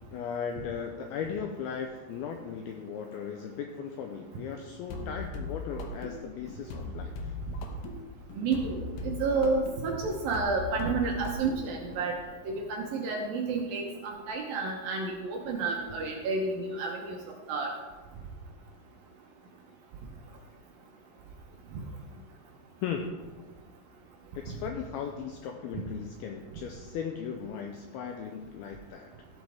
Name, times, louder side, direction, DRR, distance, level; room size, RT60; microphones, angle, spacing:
voice 1, 0.1-7.3 22.8-23.2 24.4-29.1, left 7 dB, 90° left, 4 dB, 2.2 m, -37 dB
sound 1, 4.9-12.1, left 2 dB, 70° left, 2.2 m, -39 dB
voice 2, 8.4-8.8 9.0-12.2 12.5-17.2 17.5-17.7, right 4 dB, 70° right, 0 dB, 2.3 m, -30 dB
15.0 x 8.0 x 3.5 m, 1.3 s
omnidirectional pair, 5.2 m